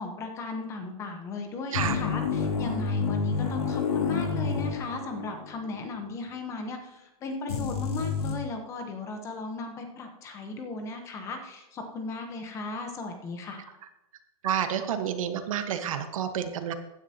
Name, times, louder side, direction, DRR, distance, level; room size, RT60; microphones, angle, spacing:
voice 1, 0.0-13.6, left 3 dB, 15° left, 5 dB, 0.9 m, -36 dB
sound 1, 1.7-5.5 5.8-5.9 7.5-8.3, left 5 dB, 85° left, 2.7 m, -29 dB
voice 2, 14.4-16.7, right 9 dB, 65° right, 8 dB, 1.2 m, -29 dB
15.0 x 9.8 x 2.8 m, 0.92 s
hypercardioid pair, 165°, 19 cm